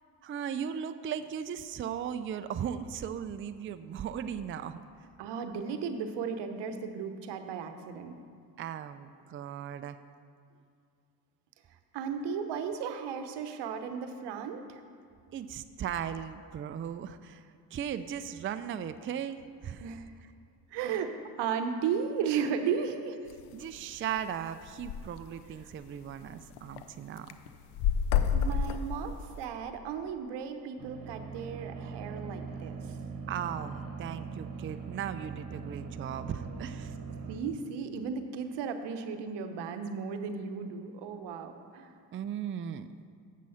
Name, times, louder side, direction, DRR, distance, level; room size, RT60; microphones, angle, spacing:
voice 1, 0.2-4.9 8.6-10.0 15.3-19.9 23.5-27.3 33.3-36.9 42.1-42.9, right 8 dB, 30° right, 10 dB, 0.4 m, -37 dB
voice 2, 5.2-8.1 11.9-14.8 19.8-20.1 20.7-23.2 28.3-32.7 37.3-41.9, right 6 dB, 80° right, 7 dB, 0.8 m, -35 dB
sound 1, 23.3-23.5 24.0-24.1 24.3-24.4 24.6-25.0 25.6-25.7 26.1-26.8 27.2-29.4, left 7 dB, 75° left, 0.6 m, -29 dB
sound 2, 30.8-37.4, right 5 dB, 60° right, 1.2 m, -41 dB
7.6 x 7.3 x 5.6 m, 2.3 s
supercardioid pair, 70°, 41 cm